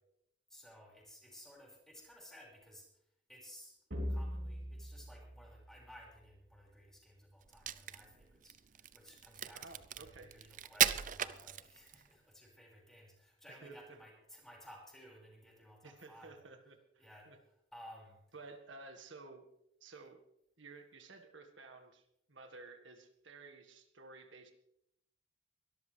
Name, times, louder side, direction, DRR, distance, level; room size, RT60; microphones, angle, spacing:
voice 1, 0.5-16.4 17.0-18.2, equal, 5° left, -2 dB, 5.3 m, -57 dB
sound 1, 3.9-6.5, equal, 65° right, 3.2 m, -42 dB
Crack, 7.5-12.1, right 10 dB, 45° right, 0.5 m, -36 dB
voice 2, 9.5-10.3 13.5-13.7 15.8-17.4 18.3-19.4 19.8-20.2 20.6-22.0 22.3-24.5, right 3 dB, 85° right, 5 dB, 1.7 m, -54 dB
22.5 x 13.0 x 3.4 m, 0.77 s
head